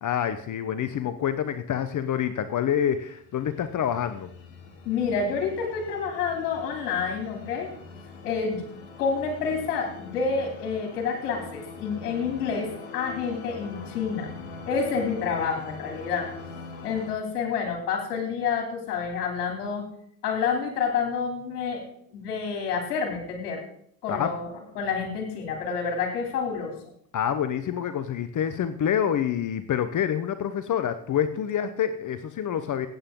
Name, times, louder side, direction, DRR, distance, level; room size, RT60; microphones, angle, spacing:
voice 1, 0.0-4.3 24.1-24.3 27.1-32.9, left 9 dB, 40° left, 11 dB, 1.0 m, -27 dB
sound 1, 2.8-17.1, left 4 dB, 65° left, 3.5 m, -43 dB
voice 2, 4.8-7.7 8.2-8.6 9.0-14.3 14.6-16.3 16.8-19.9 20.2-21.8 22.1-23.6 24.0-26.8, left 5 dB, 80° left, 2 dB, 3.1 m, -28 dB
15.5 x 8.9 x 3.8 m, 0.66 s
hypercardioid pair, 70°, 46 cm